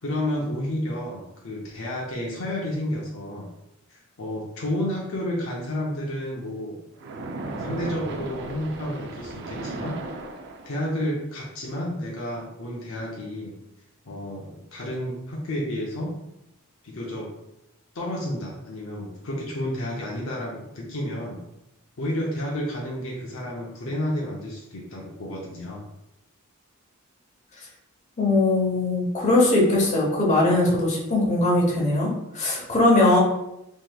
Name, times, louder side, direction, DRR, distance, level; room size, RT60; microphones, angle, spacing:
voice 1, 0.0-3.5 3.9-6.8 7.6-10.2 10.6-13.6 14.1-16.2 16.8-17.3 17.9-21.4 22.0-25.9, left 1 dB, 65° left, -2 dB, 0.6 m, -31 dB
Splash splatter, 7.0-11.0, right 2 dB, 50° right, 0.4 m, -35 dB
voice 2, 28.2-33.2, left 2 dB, 30° left, -2 dB, 0.8 m, -20 dB
3.5 x 3.0 x 2.3 m, 0.86 s
head